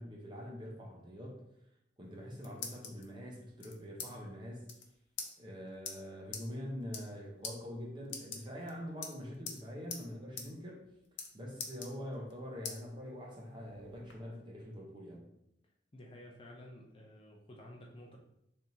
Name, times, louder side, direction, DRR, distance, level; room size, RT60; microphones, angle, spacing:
voice 1, 0.0-1.4 2.0-4.7 5.4-10.9 11.3-15.3, equal, 25° right, -2 dB, 0.8 m, -44 dB
sound 1, 2.0-3.0 3.6-4.1 4.4-4.5 4.6-4.8 5.2-5.3 5.8-5.9 6.3-6.4 6.8-7.2 7.4-7.5 8.0-8.7 9.0-9.6 9.9-10.0 10.4-10.5 10.8-11.3 11.6-12.3 12.6-12.8 13.3-14.1, left 5 dB, 90° left, 0.6 m, -43 dB
voice 2, 15.9-18.2, left 1 dB, 30° left, -1 dB, 0.5 m, -52 dB
4.3 x 3.5 x 2.7 m, 0.77 s
head